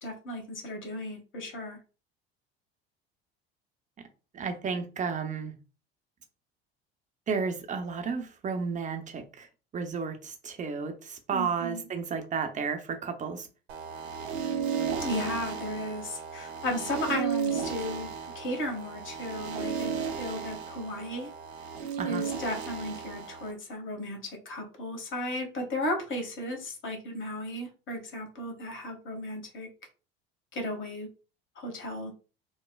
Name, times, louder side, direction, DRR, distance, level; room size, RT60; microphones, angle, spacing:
voice 1, 0.0-1.8 11.3-11.8 15.0-18.1 18.3-21.3 22.0-29.7 30.5-31.1 31.6-32.1, left 1 dB, 40° left, 1.3 m, -35 dB
voice 2, 4.3-5.5 7.3-9.5 9.7-13.5 22.0-22.2, right 5 dB, 25° right, 0.6 m, -32 dB
sound 1, 13.7-23.5, right 7 dB, 80° right, 0.5 m, -34 dB
3.1 x 2.1 x 2.3 m
hypercardioid pair, 65°, 31 cm